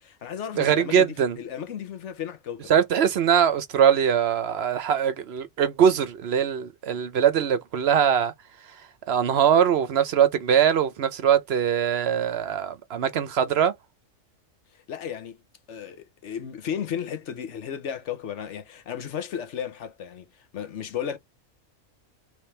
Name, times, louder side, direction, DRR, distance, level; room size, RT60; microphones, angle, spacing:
voice 1, 0.0-2.7 14.7-15.4 15.7-21.2, left 8 dB, 70° left, 1.1 m, -34 dB
voice 2, 0.6-1.4 2.7-8.3 9.1-13.7, right 8 dB, 60° right, 0.8 m, -22 dB
3.4 x 3.2 x 4.3 m
omnidirectional pair, 1.3 m